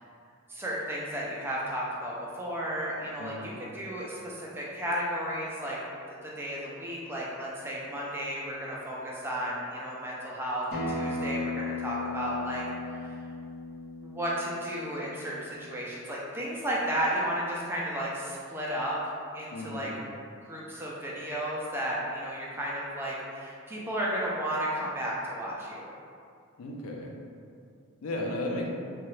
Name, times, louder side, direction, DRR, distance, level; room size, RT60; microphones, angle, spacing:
voice 1, 0.5-5.8 6.2-13.1 14.0-18.9 19.3-19.9 20.5-25.9, equal, 10° right, -5 dB, 0.3 m, -33 dB
voice 2, 3.2-3.6 19.5-20.0 26.6-27.2 28.0-28.7, left 1 dB, 85° left, 0 dB, 0.4 m, -35 dB
Acoustic guitar, 10.7-15.9, left 3 dB, 70° left, 0.8 m, -36 dB
2.9 x 2.3 x 3.1 m, 2.4 s
head